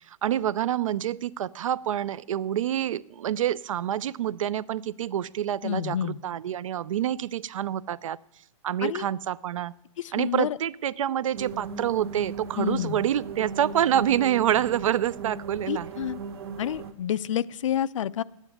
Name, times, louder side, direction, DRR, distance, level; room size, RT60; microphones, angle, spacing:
voice 1, 0.1-8.2 8.6-9.7 10.1-15.9, right 11 dB, 70° right, 21 dB, 0.5 m, -27 dB
voice 2, 5.6-6.2 8.8-9.1 10.0-10.6 12.6-13.0 15.7-16.2 16.6-18.2, left 10 dB, 65° left, 16 dB, 0.5 m, -29 dB
sound 1, 11.3-16.9, right 5 dB, 50° right, 1.3 m, -38 dB
11.5 x 9.1 x 9.8 m, 0.80 s
hypercardioid pair, 175°, 17 cm